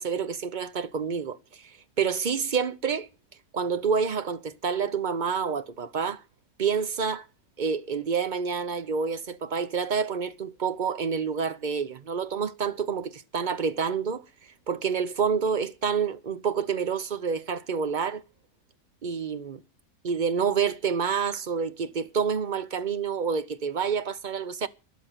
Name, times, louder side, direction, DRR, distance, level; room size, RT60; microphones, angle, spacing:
voice 1, 0.0-1.4 2.0-3.1 3.5-6.2 6.6-7.3 7.6-14.2 14.7-18.2 19.0-19.6 20.0-24.7, right 6 dB, 40° right, 0.7 m, -28 dB
13.0 x 10.5 x 7.3 m
omnidirectional pair, 1.6 m